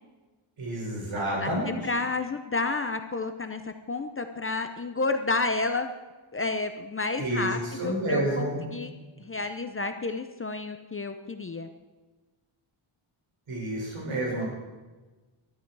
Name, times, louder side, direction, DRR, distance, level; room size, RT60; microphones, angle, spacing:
voice 1, 0.6-1.8 7.2-8.6 13.5-14.4, right 1 dB, 80° right, -3 dB, 6.5 m, -29 dB
voice 2, 1.4-5.9 6.3-8.9 9.2-11.7, left 3 dB, 25° left, 7 dB, 0.6 m, -30 dB
21.5 x 13.0 x 4.7 m, 1.2 s
wide cardioid pair, 170°, 50 cm